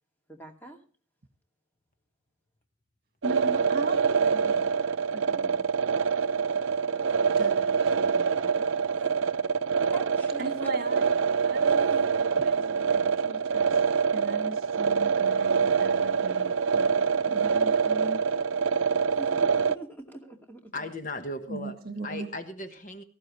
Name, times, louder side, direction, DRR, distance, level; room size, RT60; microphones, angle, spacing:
voice 1, 0.3-0.8 8.4-9.1 9.7-10.8 11.6-12.0 19.2-20.9, right 1 dB, 10° left, 2.3 m, -45 dB
voice 2, 3.2-4.7 5.1-5.6 7.4-8.3 10.4-11.1 11.4-13.8 14.1-18.2 21.5-22.3, right 2 dB, 45° right, 2.0 m, -39 dB
sound 1, 3.2-19.8, right 6 dB, 70° right, 0.6 m, -25 dB
voice 3, 20.7-21.8 22.0-23.0, left 1 dB, 40° left, 1.3 m, -36 dB
18.5 x 14.5 x 3.2 m
head